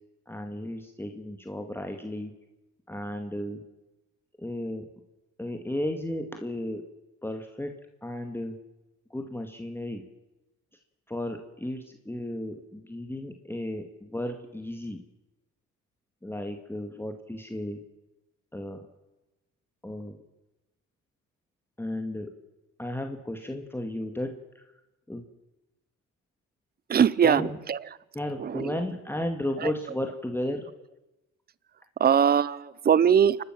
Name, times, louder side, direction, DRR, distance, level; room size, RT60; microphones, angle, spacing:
voice 1, 0.3-2.3 2.9-3.6 4.4-4.8 5.4-6.8 7.2-7.7 8.0-8.6 9.1-10.0 11.1-15.0 16.2-17.8 18.5-18.8 19.8-20.2 21.8-22.3 22.8-24.6 25.1-25.2 27.2-27.6 28.1-30.7, left 1 dB, 5° left, 4 dB, 1.9 m, -34 dB
voice 2, 26.9-27.4 27.7-27.8 28.4-28.7 29.6-29.7 32.0-33.4, right 8 dB, 30° right, 21 dB, 0.6 m, -21 dB
28.5 x 12.5 x 7.4 m, 1.0 s
cardioid pair, 90°, 30 cm